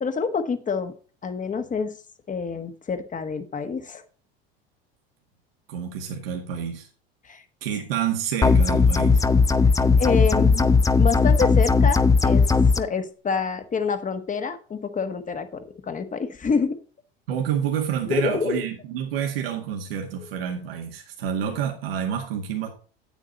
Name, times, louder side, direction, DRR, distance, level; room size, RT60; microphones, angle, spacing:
voice 1, 0.0-0.9 1.2-2.0 2.3-4.0 7.2-7.4 10.0-10.7 11.0-12.5 12.8-16.8 18.1-18.6, left 5 dB, 25° left, 9 dB, 1.4 m, -27 dB
voice 2, 5.7-6.9 7.6-9.3 17.3-22.7, right 8 dB, 80° right, 1 dB, 2.0 m, -28 dB
sound 1, 8.4-12.8, left 4 dB, 10° left, 0.6 m, -18 dB
9.0 x 8.4 x 4.2 m, 0.38 s
hypercardioid pair, 80°, 29 cm